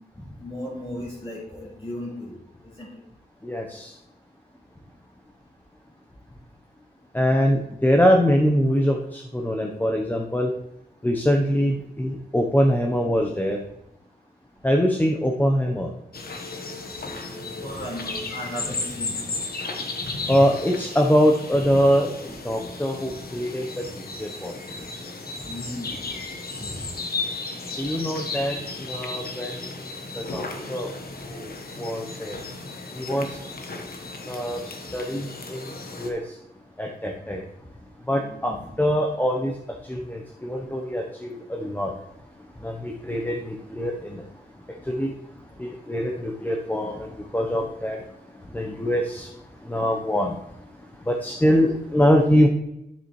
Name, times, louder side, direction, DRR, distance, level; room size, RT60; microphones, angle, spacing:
voice 1, 0.4-2.4 2.8-2.9 17.6-19.2 25.4-26.0 26.6-26.8 38.2-38.7, left 1 dB, 35° left, -6 dB, 3.5 m, -35 dB
voice 2, 3.4-3.9 7.1-10.5 11.0-13.6 14.6-15.9 20.3-24.5 27.8-29.5 30.1-30.9 31.3-31.5 31.8-32.4 32.9-33.4 34.3-36.3 36.8-37.4 38.1-39.5 39.8-41.9 42.6-44.2 44.8-45.1 45.6-48.0 48.5-49.3 49.6-50.4 51.0-52.5, equal, 10° left, 1 dB, 0.9 m, -23 dB
sound 1, 16.1-36.1, left 3 dB, 65° left, 1.3 m, -34 dB
9.9 x 7.3 x 3.2 m, 0.84 s
cardioid pair, 75°, 17 cm